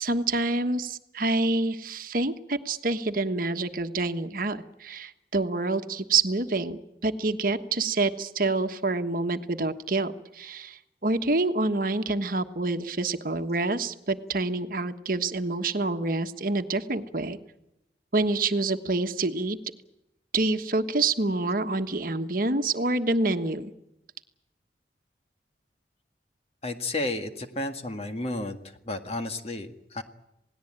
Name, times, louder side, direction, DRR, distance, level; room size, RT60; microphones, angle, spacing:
voice 1, 0.0-17.4 18.1-19.6 20.3-23.7, right 3 dB, 50° right, 7 dB, 1.3 m, -27 dB
voice 2, 26.6-28.6 28.9-30.0, left 2 dB, 35° left, 6 dB, 1.9 m, -32 dB
28.0 x 18.5 x 8.9 m, 0.89 s
head